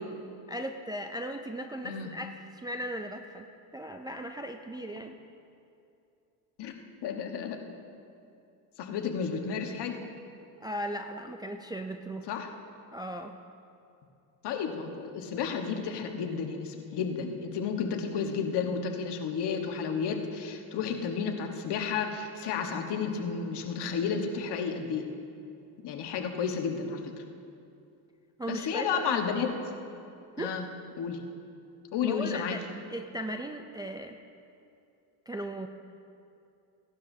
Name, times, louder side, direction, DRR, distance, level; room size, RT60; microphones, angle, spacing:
voice 1, 0.5-3.5 3.7-5.2 10.6-12.3 12.9-13.4 28.4-29.2 30.4-30.6 32.0-32.6 32.9-34.2 35.3-35.7, right 1 dB, 10° right, 4 dB, 0.4 m, -37 dB
voice 2, 7.0-7.6 8.8-10.0 12.3-12.5 14.4-25.1 25.8-27.1 28.5-29.5 30.4-30.6 31.0-31.2 31.9-32.6, left 6 dB, 60° left, 4 dB, 1.4 m, -32 dB
17.0 x 11.5 x 2.7 m, 2.6 s
supercardioid pair, 95°, 46 cm